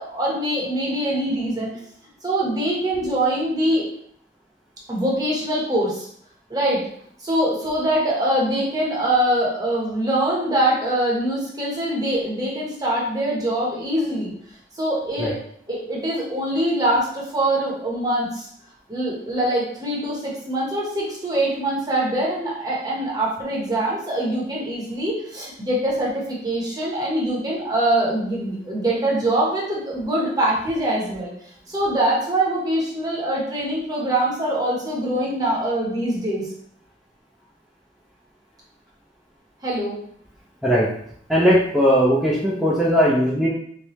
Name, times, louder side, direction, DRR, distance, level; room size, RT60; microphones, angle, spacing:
voice 1, 0.0-1.7 2.2-3.9 4.9-6.1 6.5-6.8 7.2-14.3 14.8-15.3 15.7-18.5 18.9-31.3 31.7-36.5 39.6-40.0, right 1 dB, 20° right, -5 dB, 1.1 m, -23 dB
voice 2, 41.3-43.5, equal, 5° right, -8 dB, 0.6 m, -18 dB
3.3 x 3.3 x 3.0 m, 0.64 s
head